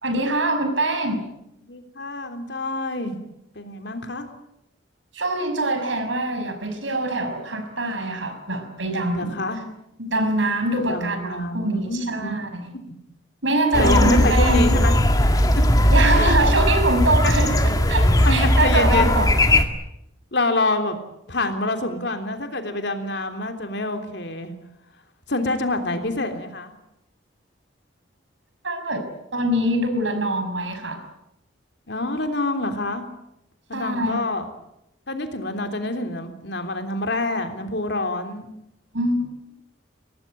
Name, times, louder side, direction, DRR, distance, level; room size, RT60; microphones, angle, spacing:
voice 1, 0.0-1.3 5.1-9.3 10.0-12.5 13.4-14.6 15.9-17.5 17.9-19.4 28.6-31.0 33.7-34.2 38.9-39.2, right 1 dB, 75° right, 7 dB, 6.0 m, -24 dB
voice 2, 1.6-3.2 3.5-4.3 9.1-9.6 10.9-12.4 12.7-12.8 13.8-15.0 15.5-15.6 16.1-16.3 17.2-17.3 18.2-19.1 20.3-21.0 21.3-24.5 25.3-26.7 31.9-33.1 33.7-34.5 35.1-38.5, left 2 dB, 60° left, 6 dB, 3.4 m, -26 dB
sound 1, 13.7-19.7, left 1 dB, 20° left, 1.9 m, -18 dB
24.0 x 19.0 x 9.2 m, 0.83 s
head